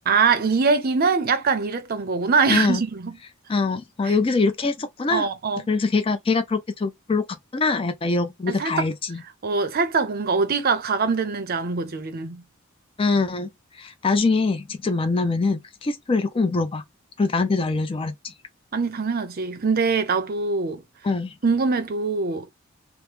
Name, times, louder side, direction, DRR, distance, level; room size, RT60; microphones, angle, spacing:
voice 1, 0.1-3.2 4.0-4.1 5.1-5.6 8.5-8.9 9.4-12.4 18.7-20.8 21.4-22.5, right 4 dB, 45° right, 0.6 m, -23 dB
voice 2, 2.5-2.8 3.5-5.3 5.7-7.2 7.5-9.2 13.0-13.5 13.8-16.8 17.2-18.3 21.0-21.3, left 3 dB, 25° left, 0.4 m, -23 dB
3.0 x 2.0 x 3.2 m
head